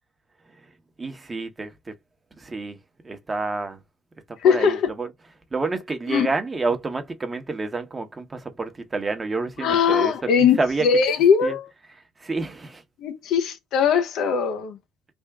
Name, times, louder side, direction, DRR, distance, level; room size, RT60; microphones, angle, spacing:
voice 1, 1.0-1.9 2.4-2.8 3.0-3.8 4.3-5.1 5.5-10.9 11.4-11.6 12.2-12.8, right 3 dB, 20° right, 1.0 m, -29 dB
voice 2, 4.4-4.9 6.1-6.3 9.6-10.6 10.8-11.6 13.0-14.8, left 6 dB, 70° left, 0.8 m, -20 dB
3.5 x 2.5 x 3.4 m
cardioid pair, 120°, 0 cm